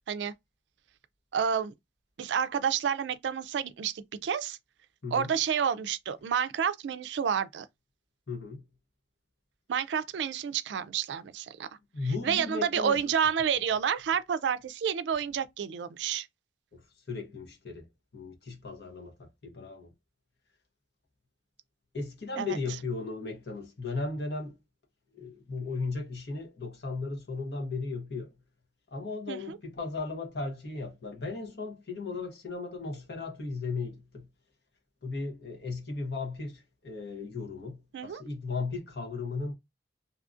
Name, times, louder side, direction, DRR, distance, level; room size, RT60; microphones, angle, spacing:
voice 1, 1.3-1.7 2.2-4.6 5.1-7.7 9.7-11.7 12.2-16.3 22.4-22.6 29.3-29.6 37.9-38.2, right 7 dB, 80° right, 0.3 m, -29 dB
voice 2, 8.3-8.6 11.9-13.0 16.7-16.8 17.1-17.9 18.1-19.9 21.9-24.5 25.1-28.3 28.9-34.3 35.0-39.5, left 3 dB, 65° left, 1.0 m, -36 dB
2.7 x 2.3 x 2.5 m
head